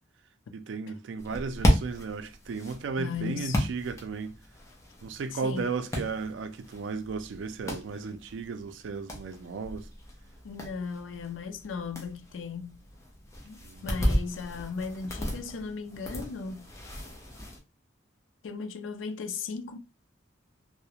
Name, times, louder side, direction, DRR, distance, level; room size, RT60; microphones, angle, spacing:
voice 1, 0.5-4.4 5.0-9.9 13.6-14.1, right 4 dB, 75° right, 0.3 m, -35 dB
sound 1, 1.2-17.6, equal, 15° left, 0.6 m, -34 dB
voice 2, 3.0-3.6 5.3-5.7 10.4-12.8 13.4-16.7 18.4-19.8, left 5 dB, 85° left, 0.4 m, -37 dB
2.3 x 2.0 x 2.8 m
head